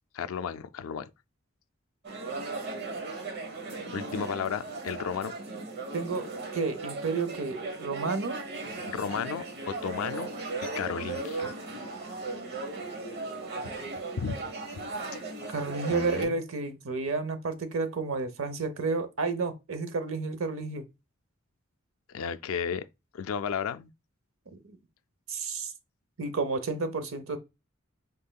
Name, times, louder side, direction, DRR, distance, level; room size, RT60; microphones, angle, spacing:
voice 1, 0.1-1.1 3.9-5.3 8.8-10.3 10.8-11.5 13.6-13.8 14.2-14.4 15.9-16.4 22.1-22.9 23.1-23.9, left 7 dB, 90° left, 0.4 m, -33 dB
sound 1, 2.0-16.2, right 3 dB, 55° right, 0.9 m, -37 dB
voice 2, 5.9-6.3 6.5-8.4 15.5-20.8 24.5-24.8 25.3-25.7 26.2-27.4, right 4 dB, 80° right, 0.7 m, -31 dB
5.4 x 3.5 x 2.3 m
head